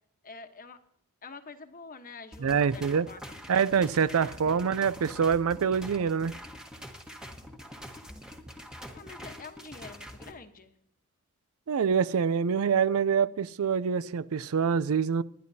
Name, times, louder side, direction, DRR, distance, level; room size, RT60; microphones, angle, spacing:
voice 1, 0.2-0.8 1.2-3.8 4.2-4.6 8.9-10.7, left 4 dB, 40° left, 1.1 m, -47 dB
sound 1, 2.3-10.3, equal, 5° right, 1.2 m, -45 dB
voice 2, 2.4-3.1 3.5-6.3 11.7-15.2, right 6 dB, 70° right, 0.4 m, -25 dB
25.5 x 11.0 x 2.8 m
head